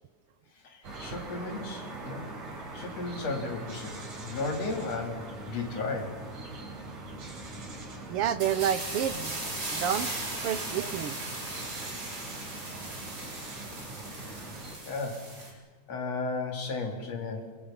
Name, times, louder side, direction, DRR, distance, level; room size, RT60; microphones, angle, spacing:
voice 1, 0.6-2.3 2.7-6.2 14.9-17.5, left 3 dB, 60° left, 4 dB, 3.9 m, -35 dB
sound 1, 0.8-14.8, right 2 dB, 85° right, 5.7 m, -42 dB
voice 2, 8.1-9.3 9.7-10.1 10.4-11.2 12.7-12.8, right 10 dB, 70° right, 14 dB, 1.4 m, -29 dB
sound 2, 8.4-15.5, right 2 dB, 30° right, 4.9 m, -38 dB
27.0 x 23.5 x 5.7 m, 1.4 s
omnidirectional pair, 3.3 m